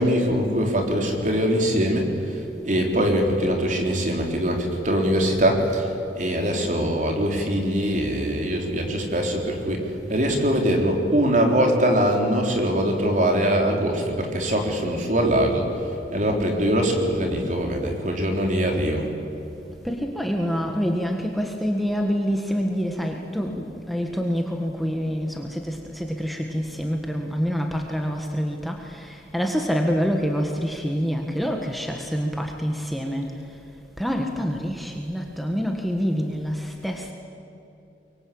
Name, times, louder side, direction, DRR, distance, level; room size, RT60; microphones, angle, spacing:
voice 1, 0.0-19.1, equal, 45° right, 1 dB, 4.0 m, -22 dB
voice 2, 19.8-33.3 34.0-37.1, equal, ahead, 2 dB, 1.6 m, -26 dB
24.5 x 23.0 x 8.8 m, 2.9 s
head